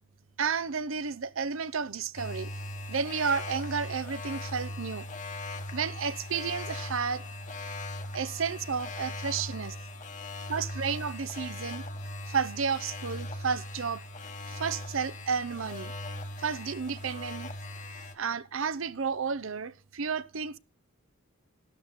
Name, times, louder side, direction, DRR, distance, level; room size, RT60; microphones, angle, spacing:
voice 1, 0.4-2.5 2.9-5.1 5.7-7.2 8.1-9.8 10.5-11.8 12.3-14.0 14.5-15.9 16.4-17.5 18.1-20.6, right 6 dB, 60° right, 0.7 m, -32 dB
sound 1, 2.2-18.2, left 1 dB, 35° left, 1.2 m, -39 dB
12.0 x 12.0 x 4.1 m
head